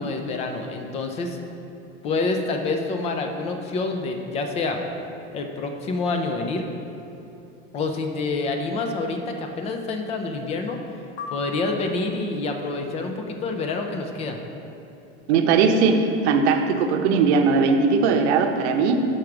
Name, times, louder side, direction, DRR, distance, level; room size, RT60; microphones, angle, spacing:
voice 1, 0.0-1.4 2.0-4.8 5.3-6.7 7.7-10.8 11.3-14.4, left 3 dB, 20° left, 4 dB, 0.3 m, -27 dB
sound 1, 11.2-12.5, left 3 dB, 65° left, 0.6 m, -37 dB
voice 2, 15.3-19.0, right 5 dB, 60° right, 5 dB, 0.8 m, -19 dB
6.3 x 4.7 x 5.8 m, 2.9 s
supercardioid pair, 140°, 36 cm